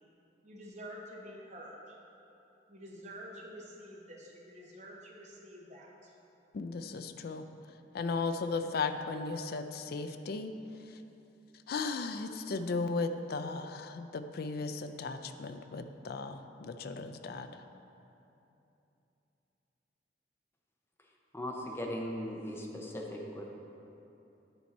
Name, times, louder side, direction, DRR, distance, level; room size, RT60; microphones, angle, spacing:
voice 1, 0.4-2.0 2.7-6.1, equal, 40° right, -2 dB, 1.0 m, -48 dB
voice 2, 6.5-7.5 7.9-10.6 11.7-17.6, left 4 dB, 60° left, 9 dB, 0.4 m, -36 dB
voice 3, 21.3-23.5, equal, 15° left, -1 dB, 0.7 m, -38 dB
9.8 x 4.5 x 4.2 m, 2.9 s
head